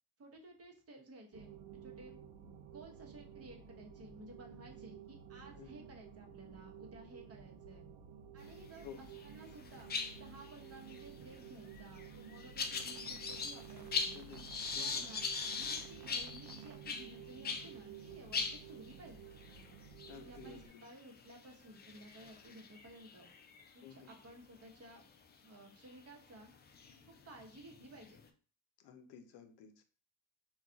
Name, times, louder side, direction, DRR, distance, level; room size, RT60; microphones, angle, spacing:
voice 1, 0.2-2.2 2.7-7.9 8.3-14.2 14.7-15.3 15.5-19.3 20.1-23.3 23.7-25.1 25.4-26.5 27.1-28.2, right 1 dB, 35° right, 0 dB, 0.9 m, -55 dB
sound 1, 1.3-20.7, right 8 dB, 70° right, 0.5 m, -53 dB
sound 2, 8.8-9.3 9.5-17.7 18.0-18.1 18.3-24.1 24.7-25.0 25.8-25.9 26.5-28.3, left 5 dB, 25° left, 0.4 m, -41 dB
voice 2, 14.7-15.1 20.1-20.9 23.8-24.1 28.8-29.8, left 9 dB, 80° left, 7 dB, 0.6 m, -53 dB
2.3 x 2.3 x 3.8 m, 0.40 s
cardioid pair, 95°, 39 cm